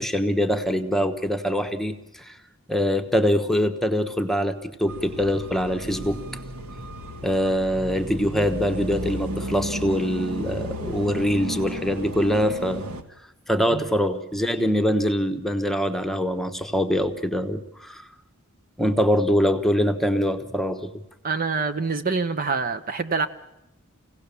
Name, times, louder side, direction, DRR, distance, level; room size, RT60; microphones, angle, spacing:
voice 1, 0.0-2.4 2.7-6.2 7.2-12.9 13.5-18.0 18.8-20.9, equal, ahead, 7 dB, 1.1 m, -24 dB
sound 1, 4.9-13.0, equal, 70° right, 1.5 m, -33 dB
voice 2, 21.2-23.3, right 4 dB, 40° right, 9 dB, 0.8 m, -25 dB
25.5 x 17.0 x 6.9 m, 0.90 s
head